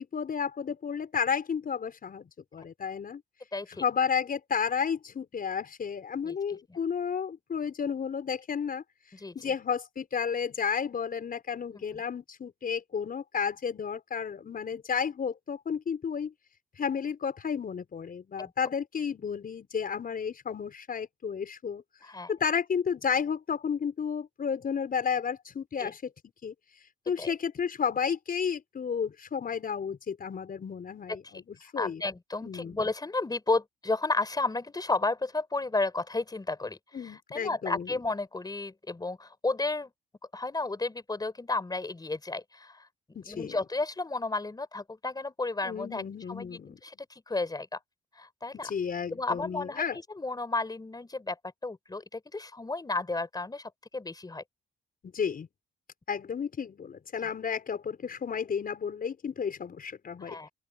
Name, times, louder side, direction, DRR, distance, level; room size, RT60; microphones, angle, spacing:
voice 1, 0.0-3.2 3.7-8.8 9.3-16.3 16.8-21.8 22.3-26.1 26.4-26.5 27.1-32.0 32.4-32.8 36.9-38.0 43.1-43.6 45.6-46.8 48.5-50.0 55.1-55.5 56.1-60.4, left 6 dB, 45° left, 5.9 m, -32 dB
voice 2, 3.5-3.8 6.2-6.3 9.2-9.3 18.4-18.5 22.0-22.3 25.8-25.9 27.2-27.3 31.8-36.8 37.0-39.9 40.3-42.8 43.3-46.0 46.3-46.6 47.3-47.8 48.2-48.7 49.1-49.8 50.1-51.4 51.6-54.4 60.3-60.5, left 3 dB, 20° left, 5.0 m, -32 dB
open air
cardioid pair, 90°, 20 cm